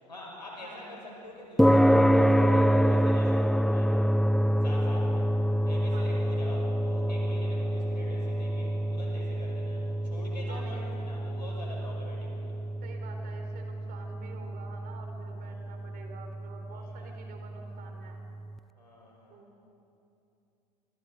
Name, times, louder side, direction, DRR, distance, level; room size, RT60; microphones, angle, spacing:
voice 1, 0.1-4.0 4.6-5.3 5.6-12.6 15.4-15.7 16.7-17.1 18.7-19.4, left 2 dB, 90° left, -3 dB, 6.0 m, -46 dB
voice 2, 0.6-1.0 5.9-6.2 10.5-10.9 11.7-11.9 12.8-18.2 19.3-19.5, right 4 dB, 45° right, 3 dB, 4.3 m, -48 dB
sound 1, 1.6-18.1, equal, ahead, 0.4 m, -27 dB
27.5 x 27.0 x 4.0 m, 2.8 s
figure-of-eight pair, 75°, 21 cm